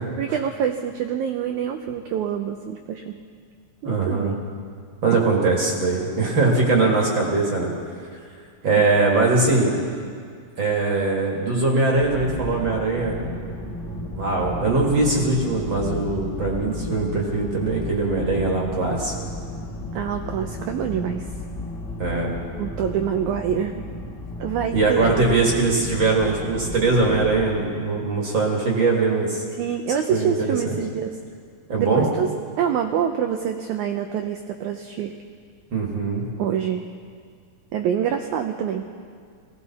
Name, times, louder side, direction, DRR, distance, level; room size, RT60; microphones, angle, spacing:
voice 1, 0.2-3.1 3.8-4.4 5.1-5.2 8.6-8.8 19.9-21.3 22.6-23.7 24.4-25.3 29.6-31.1 31.8-32.3 32.6-35.1 36.4-36.8 37.7-38.9, right 8 dB, 90° right, 5 dB, 1.7 m, -26 dB
voice 2, 3.8-4.4 5.0-7.7 8.6-9.7 10.6-13.2 14.2-19.1 22.0-22.3 24.7-29.4 30.1-30.8 31.7-32.1 35.7-36.3, right 3 dB, 40° right, -1 dB, 2.0 m, -21 dB
sound 1, 11.9-27.6, left 2 dB, 25° left, 2.0 m, -34 dB
21.0 x 16.5 x 4.1 m, 2.1 s
omnidirectional pair, 4.2 m